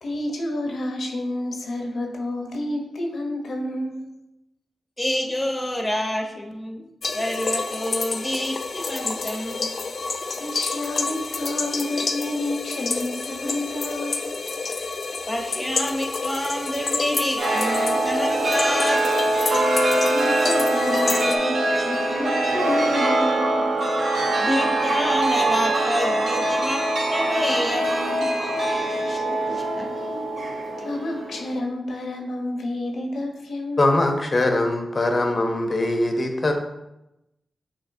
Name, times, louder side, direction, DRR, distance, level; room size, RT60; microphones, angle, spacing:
voice 1, 0.0-4.1 10.4-14.3 20.0-23.7 29.0-29.6 30.8-33.9, left 1 dB, 80° left, 2 dB, 0.8 m, -30 dB
voice 2, 5.0-6.9 7.1-9.7 15.3-19.0 24.4-28.3 29.0-29.2 29.5-29.9, left 1 dB, 15° left, 1 dB, 0.9 m, -28 dB
sound 1, 7.0-21.4, left 4 dB, 60° left, 0.4 m, -29 dB
Chime, 17.4-31.6, right 1 dB, 70° right, 0.9 m, -23 dB
voice 3, 33.8-36.5, left 2 dB, 40° left, 4 dB, 0.7 m, -22 dB
6.9 x 3.0 x 2.6 m, 0.90 s
cardioid pair, 65°, 0 cm